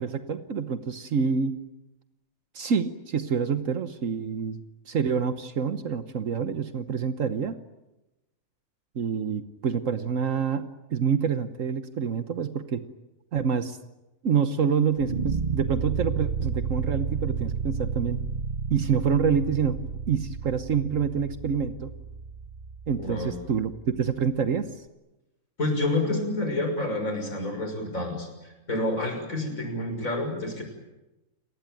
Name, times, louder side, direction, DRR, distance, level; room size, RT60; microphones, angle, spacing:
voice 1, 0.0-1.6 2.5-4.6 4.9-7.5 8.9-12.8 13.3-13.8 14.2-18.2 18.7-19.8 20.1-21.9 22.9-24.7 29.9-30.1, right 6 dB, 70° right, 10 dB, 1.5 m, -27 dB
sound 1, 15.0-24.1, right 5 dB, 40° right, 1.1 m, -32 dB
voice 2, 23.0-23.3 25.6-30.6, left 2 dB, 75° left, 4 dB, 6.7 m, -29 dB
29.0 x 19.5 x 9.2 m, 1.0 s
omnidirectional pair, 1.4 m